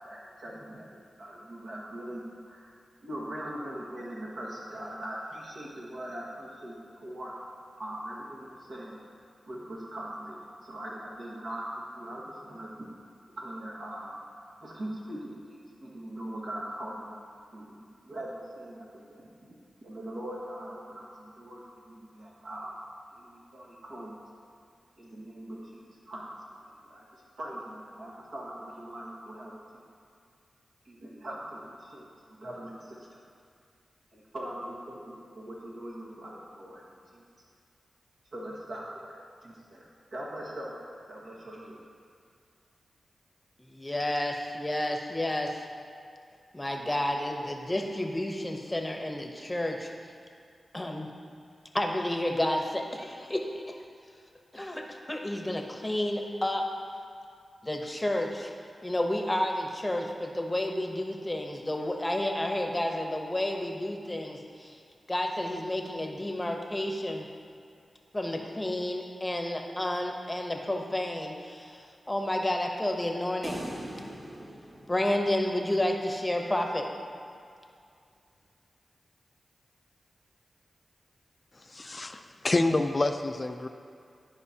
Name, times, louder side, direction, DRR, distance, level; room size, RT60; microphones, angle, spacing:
voice 1, 0.0-7.3 7.8-9.0 9.5-12.7 13.4-14.2 14.6-17.1 17.5-17.6 18.0-19.5 19.8-22.7 23.1-24.1 25.0-26.3 26.6-29.9 30.8-32.0 32.4-33.2 34.1-36.8 37.1-37.2 38.3-39.8 40.1-40.8 41.1-41.8, right 1 dB, 75° right, -5 dB, 1.6 m, -41 dB
voice 2, 43.6-45.6 46.5-49.9 50.7-51.1 51.7-53.8 54.5-56.6 57.6-58.5 58.8-64.7 65.1-67.2 68.1-73.7 74.9-76.9, left 1 dB, 20° left, 3 dB, 0.8 m, -31 dB
sound 1, 73.4-75.8, right 1 dB, 40° right, 1.7 m, -41 dB
voice 3, 81.5-83.7, left 2 dB, 40° left, 7 dB, 0.4 m, -28 dB
12.0 x 5.0 x 2.8 m, 2.3 s
cardioid pair, 55°, 0 cm